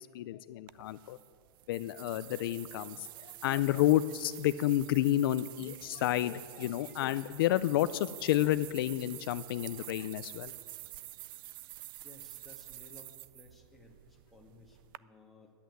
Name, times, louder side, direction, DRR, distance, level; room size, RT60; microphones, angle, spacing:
voice 1, 0.1-1.2 1.7-10.5, left 14 dB, 60° left, 14 dB, 0.4 m, -30 dB
sound 1, 0.7-15.0, right 16 dB, 55° right, 0.4 m, -49 dB
voice 2, 12.0-15.5, left 2 dB, ahead, -2 dB, 1.7 m, -58 dB
12.5 x 8.5 x 9.3 m, 2.1 s
supercardioid pair, 155°, 13 cm